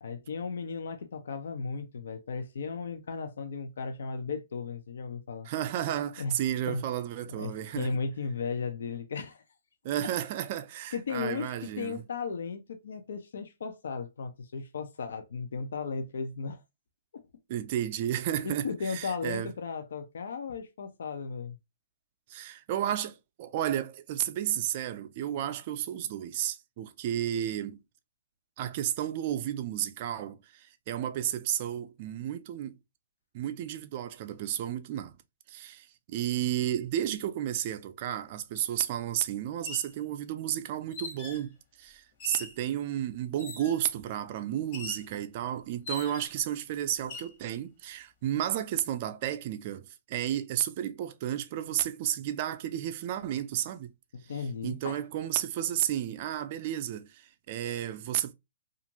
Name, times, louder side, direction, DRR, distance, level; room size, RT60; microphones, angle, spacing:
voice 1, 0.0-5.5 6.2-6.4 6.7-6.8 7.4-9.4 10.9-16.6 17.1-17.2 18.4-21.6 54.1-55.0, left 5 dB, 75° left, 0.5 m, -35 dB
voice 2, 5.4-8.0 9.8-12.0 17.5-19.5 22.3-27.8 28.6-32.8 33.3-35.2 35.5-53.9 54.6-58.3, right 11 dB, 40° right, 0.4 m, -32 dB
sound 1, 38.6-38.7 39.5-39.9 40.9-41.5 42.2-42.6 43.4-43.8 44.7-45.1 45.9-46.4 47.0-47.3, left 3 dB, 40° left, 1.0 m, -41 dB
2.5 x 2.4 x 2.9 m
hypercardioid pair, 145°, 0 cm